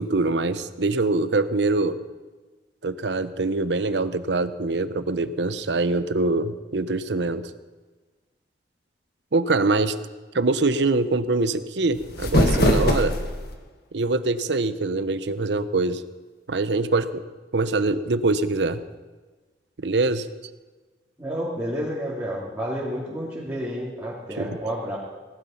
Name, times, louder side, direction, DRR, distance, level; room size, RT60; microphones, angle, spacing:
voice 1, 0.0-2.0 2.8-7.5 9.3-10.0 10.3-13.2 13.9-16.0 16.5-17.2 17.5-18.8 19.8-20.3 24.4-24.6, right 3 dB, 70° right, 13 dB, 0.8 m, -24 dB
sound 1, 11.9-13.5, left 1 dB, 60° left, 1.6 m, -21 dB
voice 2, 21.2-25.0, equal, 15° right, -7 dB, 2.7 m, -30 dB
18.0 x 12.0 x 5.7 m, 1.3 s
head